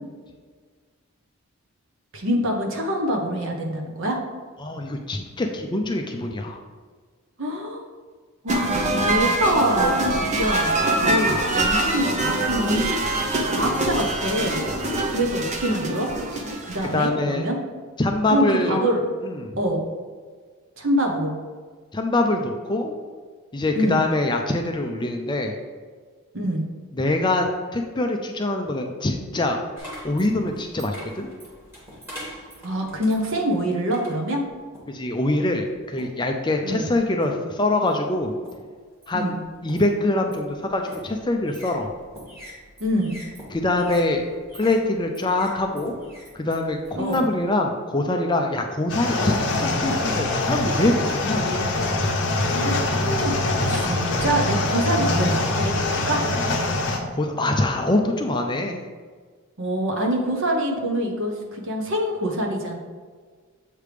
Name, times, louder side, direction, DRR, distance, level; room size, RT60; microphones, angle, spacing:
voice 1, 2.1-4.2 7.4-7.8 8.4-10.0 10.4-10.8 11.0-13.0 13.5-14.6 15.1-16.1 16.6-17.6 18.3-19.0 19.6-19.8 20.8-21.4 23.7-24.0 26.3-26.6 32.6-34.4 36.6-36.9 39.1-39.4 42.8-43.1 47.0-47.2 52.5-53.3 53.7-56.2 59.6-62.8, equal, 60° right, 2 dB, 1.0 m, -25 dB
voice 2, 4.6-6.6 16.9-17.5 18.0-18.8 19.2-19.5 21.9-22.9 23.5-25.6 26.9-29.6 30.0-31.3 34.9-38.4 39.1-39.4 39.6-41.9 43.5-45.9 46.3-51.5 57.1-58.8, left 2 dB, 20° left, 3 dB, 0.4 m, -24 dB
sound 1, 8.5-17.0, right 2 dB, 30° right, 0.7 m, -24 dB
sound 2, 29.8-35.0 35.7-36.3 36.9-37.5 37.9-47.5, equal, 10° right, 1.8 m, -44 dB
sound 3, 48.9-57.0, left 2 dB, 55° left, 0.9 m, -23 dB
7.5 x 3.3 x 5.0 m, 1.6 s
head